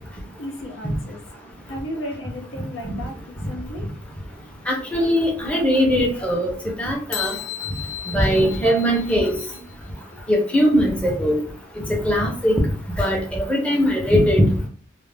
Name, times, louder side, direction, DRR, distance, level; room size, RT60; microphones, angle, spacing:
voice 1, 0.4-1.2 1.7-3.8 8.5-8.6, left 1 dB, 85° left, 1 dB, 0.8 m, -34 dB
voice 2, 4.7-6.5 6.8-7.3 8.1-9.3 10.3-11.4 12.0-12.5 13.0-14.4, equal, 5° left, -2 dB, 0.5 m, -20 dB
sound 1, 7.1-9.7, left 10 dB, 60° left, 0.3 m, -33 dB
2.3 x 2.0 x 3.3 m, 0.43 s
head